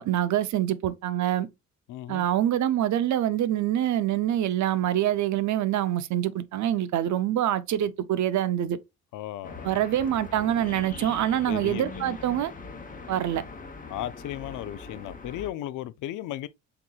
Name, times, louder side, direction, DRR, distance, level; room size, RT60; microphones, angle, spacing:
voice 1, 0.0-1.5 2.1-8.8 9.6-12.5 13.1-13.4, right 11 dB, 70° right, 0.7 m, -25 dB
voice 2, 1.9-2.3 9.1-9.7 11.5-12.0 13.9-16.5, left 13 dB, 85° left, 0.5 m, -35 dB
sound 1, 9.4-15.5, left 3 dB, 25° left, 1.0 m, -41 dB
6.7 x 3.0 x 2.3 m
cardioid pair, 90°, 30 cm